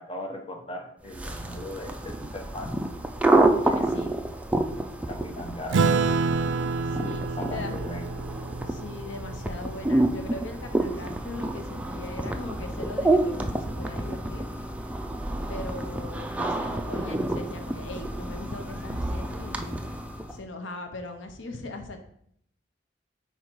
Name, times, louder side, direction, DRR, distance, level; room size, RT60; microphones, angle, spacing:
voice 1, 0.0-2.8 3.7-4.1 5.1-6.0 7.4-8.0, left 1 dB, 30° left, 2 dB, 0.9 m, -38 dB
sound 1, 1.1-20.4, right 2 dB, 5° right, 0.4 m, -29 dB
voice 2, 3.5-4.2 6.8-7.8 8.7-14.5 15.5-19.8 20.3-22.0, left 2 dB, 85° left, 6 dB, 0.7 m, -40 dB
Acoustic guitar / Strum, 5.7-10.6, right 4 dB, 75° right, 0.4 m, -28 dB
5.0 x 4.6 x 4.5 m, 0.69 s
head